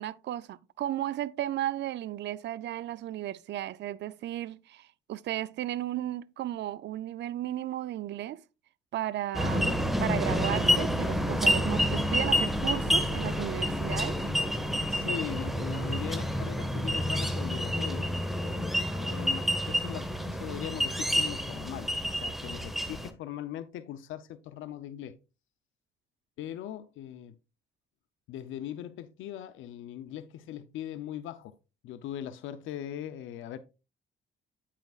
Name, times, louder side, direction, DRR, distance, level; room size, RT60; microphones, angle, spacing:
voice 1, 0.0-8.4 8.9-14.2, right 13 dB, 60° right, 0.5 m, -34 dB
sound 1, 9.3-23.1, equal, ahead, 1.0 m, -29 dB
voice 2, 14.9-25.2 26.4-27.4 28.3-31.5 31.8-33.6, left 11 dB, 85° left, 0.6 m, -40 dB
9.0 x 5.8 x 2.4 m
cardioid pair, 90°, 20 cm